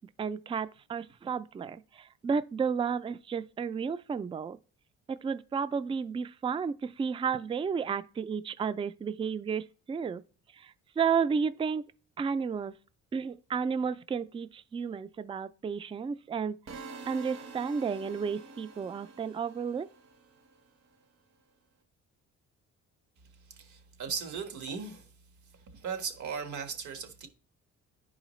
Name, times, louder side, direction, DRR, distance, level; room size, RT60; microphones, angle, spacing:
voice 1, 0.2-4.6 5.1-10.2 10.5-11.9 12.2-12.7 13.1-16.6 17.1-19.9, right 6 dB, 20° right, 0.3 m, -32 dB
sound 1, 16.7-20.7, right 4 dB, 55° right, 1.2 m, -47 dB
voice 2, 23.5-25.1 25.7-27.3, right 5 dB, 75° right, 1.5 m, -37 dB
10.5 x 4.9 x 3.1 m
cardioid pair, 90°, 30 cm